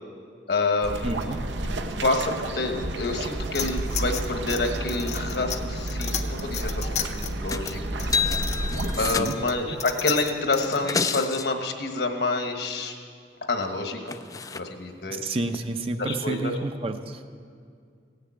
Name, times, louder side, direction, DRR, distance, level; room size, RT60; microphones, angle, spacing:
voice 1, 0.5-1.4 2.0-8.3 9.0-12.9 13.5-14.2 14.5-15.2 16.0-16.5, left 3 dB, 60° left, 5 dB, 1.3 m, -28 dB
sound 1, 0.8-9.1, right 1 dB, 80° right, 0.8 m, -31 dB
voice 2, 1.0-1.4 9.0-9.3 15.1-17.3, right 2 dB, 30° right, 7 dB, 0.6 m, -30 dB
sound 2, 3.5-10.8, left 8 dB, 40° left, 0.7 m, -34 dB
sound 3, 7.5-7.7 8.0-9.6 10.6-11.5 13.6-13.7 14.1-14.6 15.5-15.6, left 5 dB, 20° left, 0.3 m, -29 dB
16.5 x 6.8 x 8.5 m, 2.2 s
head